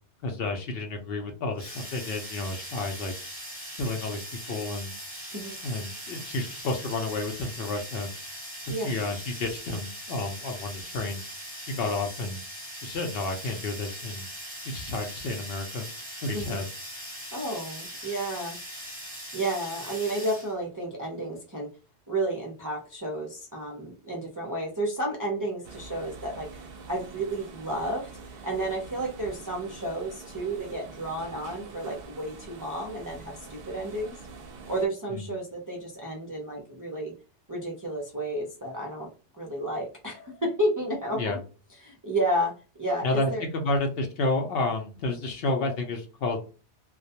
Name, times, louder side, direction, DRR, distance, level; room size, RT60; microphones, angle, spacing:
voice 1, 0.2-3.1 3.8-4.9 5.6-8.1 8.7-11.2 11.7-12.4 12.8-14.3 14.7-15.9 16.2-16.7 35.1-35.3 41.2-41.4 43.0-43.3 43.6-46.4, left 2 dB, 60° left, 4 dB, 0.7 m, -30 dB
sound 1, 1.6-20.5, equal, 10° right, 1.0 m, -40 dB
voice 2, 17.3-18.6 19.3-21.7 22.1-26.6 26.9-34.2 34.7-37.1 37.5-39.1 39.4-41.4 41.8-42.5 42.8-43.4, right 1 dB, 30° right, -2 dB, 0.4 m, -31 dB
sound 2, 25.6-34.9, right 4 dB, 65° right, 0.7 m, -45 dB
2.3 x 2.2 x 2.7 m, 0.34 s
omnidirectional pair, 1.2 m